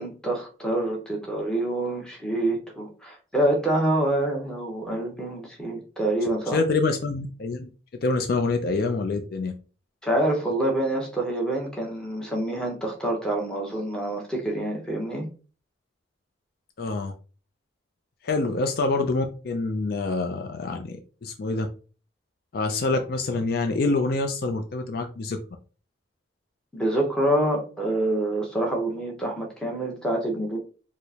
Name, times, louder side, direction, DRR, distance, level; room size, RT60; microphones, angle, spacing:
voice 1, 0.0-6.6 10.0-15.3 26.7-30.6, right 1 dB, 5° left, -1 dB, 0.8 m, -26 dB
voice 2, 6.5-7.7 8.0-9.5 16.8-17.1 18.2-21.7 22.5-25.4, left 3 dB, 50° left, 5 dB, 0.4 m, -26 dB
4.5 x 2.0 x 2.8 m, 0.37 s
head